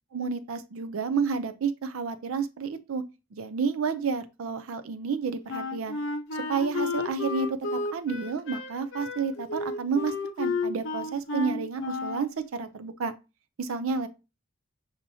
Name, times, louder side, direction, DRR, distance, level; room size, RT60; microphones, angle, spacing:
voice 1, 0.1-3.0 3.3-6.0 6.5-13.1 13.6-14.1, right 5 dB, 75° right, 0.5 m, -30 dB
Wind instrument woodwind instrument, 5.5-12.3, left 3 dB, 60° left, 0.7 m, -32 dB
6.8 x 2.9 x 2.7 m
head